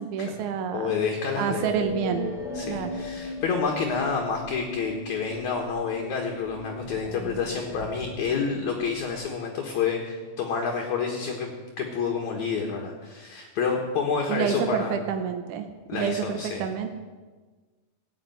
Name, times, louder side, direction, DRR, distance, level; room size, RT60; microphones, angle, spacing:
voice 1, 0.0-1.0 1.4-2.3 2.7-3.0 14.3-15.7 15.9-16.9, right 7 dB, 75° right, 7 dB, 1.9 m, -28 dB
voice 2, 0.7-1.7 2.5-14.9 15.9-16.7, left 5 dB, 60° left, 1 dB, 2.4 m, -29 dB
sound 1, 1.6-9.3, left 1 dB, ahead, 4.3 m, -37 dB
16.0 x 8.7 x 9.3 m, 1.3 s
omnidirectional pair, 4.6 m